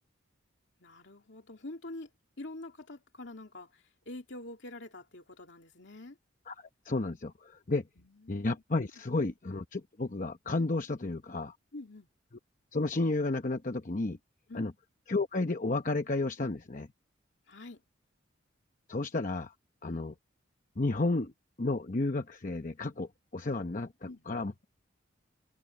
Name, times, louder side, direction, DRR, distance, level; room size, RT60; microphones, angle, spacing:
voice 1, 0.8-2.1 2.4-6.2 8.0-8.6 9.2-9.3 11.7-12.1 14.5-14.7 17.5-17.8 19.9-20.0 24.1-24.2, left 2 dB, 65° left, 2.7 m, -46 dB
voice 2, 6.5-7.8 8.3-11.5 12.7-14.2 14.5-14.7 15.1-16.9 18.9-19.5 19.8-20.1 20.8-21.3 21.6-24.5, left 2 dB, 40° left, 0.8 m, -32 dB
open air
head